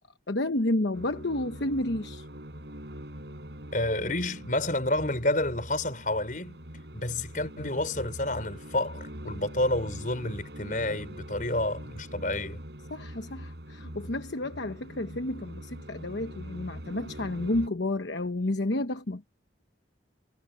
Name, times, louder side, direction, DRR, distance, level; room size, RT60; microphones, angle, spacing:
voice 1, 0.3-2.3 12.9-19.2, left 1 dB, 70° left, 1.1 m, -30 dB
sound 1, 0.9-17.7, equal, 65° right, 4.9 m, -43 dB
voice 2, 3.7-6.6 6.9-12.6, left 1 dB, 45° left, 5.8 m, -29 dB
head